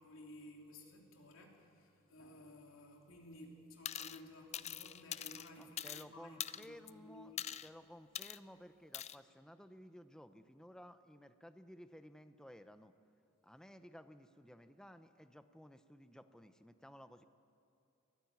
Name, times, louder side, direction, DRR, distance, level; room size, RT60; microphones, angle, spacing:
voice 1, 0.0-7.5, left 1 dB, 85° left, 1 dB, 3.1 m, -56 dB
sound 1, 3.8-4.2 4.5-6.0 6.4-6.9 7.4-7.7 8.1-8.4 8.9-9.2, left 10 dB, 35° left, 0.4 m, -43 dB
voice 2, 5.6-7.3 7.6-12.9 13.4-17.2, equal, 5° left, 10 dB, 0.7 m, -56 dB
22.5 x 14.0 x 9.5 m, 2.7 s
head